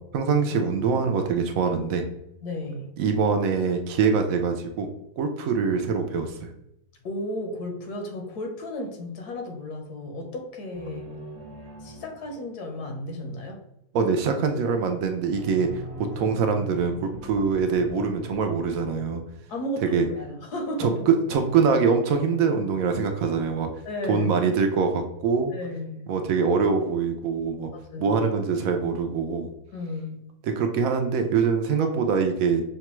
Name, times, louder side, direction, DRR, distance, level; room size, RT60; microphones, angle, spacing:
voice 1, 0.1-2.0 3.0-4.9 5.2-6.5 13.9-15.7 16.0-19.2 19.9-20.1 20.8-23.7 24.1-25.5 26.1-27.7 28.0-29.5 30.4-32.6, right 5 dB, 70° right, 5 dB, 0.9 m, -24 dB
voice 2, 2.4-2.9 7.0-11.2 11.8-13.6 19.5-21.0 23.8-24.4 25.5-26.2 27.7-28.2 29.7-30.3, left 1 dB, 80° left, 3 dB, 1.4 m, -34 dB
sound 1, 10.7-13.0 15.3-20.3, right 2 dB, 35° right, 0.9 m, -42 dB
5.7 x 2.2 x 3.0 m, 0.82 s
omnidirectional pair, 1.7 m